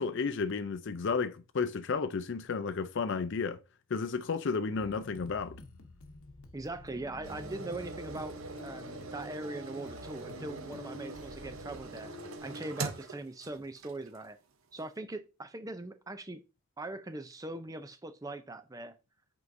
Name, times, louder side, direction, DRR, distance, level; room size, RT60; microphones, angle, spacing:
voice 1, 0.0-3.6 3.9-5.6, left 5 dB, 55° left, 0.4 m, -32 dB
sound 1, 4.8-12.4, left 2 dB, 75° left, 0.9 m, -49 dB
voice 2, 6.5-8.3 8.6-14.4 14.7-16.4 16.8-19.0, right 2 dB, 15° right, 0.5 m, -41 dB
sound 2, 7.2-14.3 14.8-14.9, right 3 dB, 65° right, 0.8 m, -43 dB
8.3 x 4.6 x 2.6 m
head